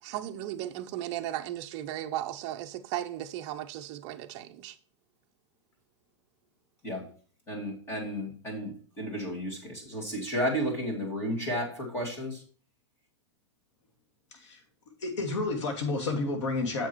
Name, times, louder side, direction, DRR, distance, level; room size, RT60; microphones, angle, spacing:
voice 1, 0.0-4.8, right 13 dB, 30° right, 0.6 m, -36 dB
voice 2, 6.8-7.1 7.5-12.4, equal, 15° left, 2.4 m, -33 dB
voice 3, 14.3-14.6 15.0-16.9, left 3 dB, 75° left, 2.6 m, -30 dB
7.3 x 6.2 x 4.6 m
supercardioid pair, 165°, 15 cm